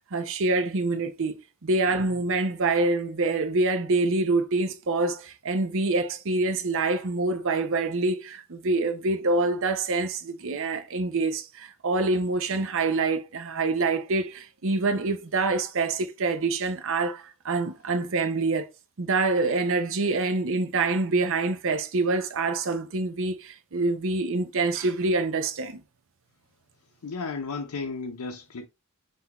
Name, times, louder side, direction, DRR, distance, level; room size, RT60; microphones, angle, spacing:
voice 1, 0.1-18.7 19.0-25.8, right 3 dB, 60° right, 0.7 m, -26 dB
voice 2, 27.0-28.7, left 4 dB, 80° left, 0.6 m, -34 dB
5.7 x 2.7 x 2.9 m
head